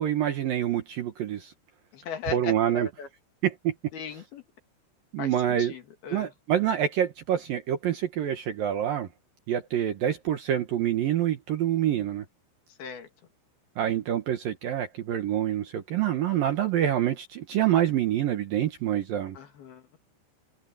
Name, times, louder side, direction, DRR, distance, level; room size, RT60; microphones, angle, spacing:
voice 1, 0.0-1.5 2.3-2.9 3.4-3.7 5.1-5.7 6.1-9.1 9.5-12.2 13.8-19.4, right 11 dB, 65° right, 2.5 m, -26 dB
voice 2, 1.9-3.1 3.9-4.4 5.2-6.3 12.8-13.1 19.4-20.0, left 7 dB, 60° left, 3.9 m, -38 dB
omnidirectional pair, 5.4 m